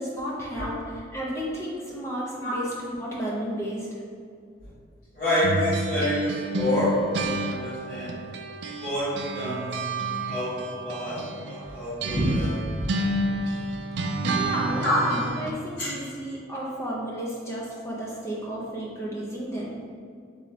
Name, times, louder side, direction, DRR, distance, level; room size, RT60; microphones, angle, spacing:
voice 1, 0.0-3.9 14.0-19.8, equal, 15° left, -5 dB, 0.6 m, -33 dB
voice 2, 5.1-8.1 8.6-9.6 10.3-12.6 14.8-15.0 15.8-15.9, left 1 dB, 45° left, -14 dB, 1.2 m, -27 dB
sound 1, 5.4-8.9 9.2-15.6, right 2 dB, 60° right, 0.3 m, -30 dB
4.1 x 3.1 x 4.1 m, 2.2 s
head